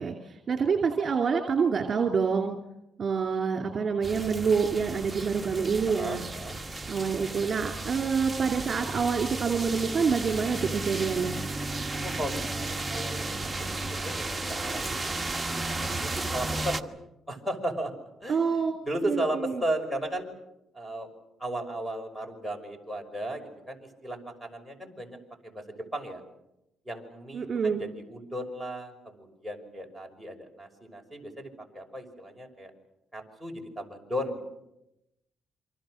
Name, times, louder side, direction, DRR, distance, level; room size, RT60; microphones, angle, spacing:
voice 1, 0.0-2.6 3.0-6.3 6.9-11.4 18.3-18.8 19.1-19.6 27.3-27.8, right 5 dB, 45° right, 4 dB, 2.6 m, -27 dB
sound 1, 4.0-16.8, right 2 dB, 15° right, 1.3 m, -34 dB
voice 2, 5.9-6.6 12.0-15.2 15.9-16.9 17.3-17.9 18.2-20.3 20.7-21.1 21.4-25.2 25.4-26.2 26.9-32.7 33.1-34.4, right 1 dB, ahead, 8 dB, 5.8 m, -35 dB
28.0 x 25.0 x 6.4 m, 0.87 s
cardioid pair, 90°, 0 cm